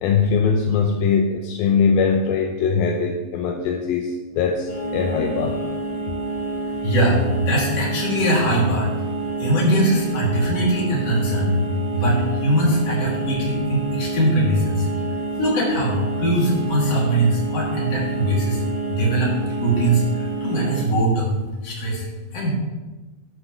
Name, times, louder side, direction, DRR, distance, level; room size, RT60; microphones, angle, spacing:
voice 1, 0.0-5.6, left 5 dB, 80° left, 3 dB, 2.5 m, -21 dB
sound 1, 4.7-20.8, right 3 dB, 60° left, 3.8 m, -28 dB
voice 2, 6.8-8.9 9.4-11.6 11.9-14.9 15.4-18.6 18.9-19.3 19.6-22.5, right 1 dB, 45° left, -4 dB, 3.3 m, -21 dB
12.0 x 9.7 x 3.1 m, 1.2 s
omnidirectional pair, 4.4 m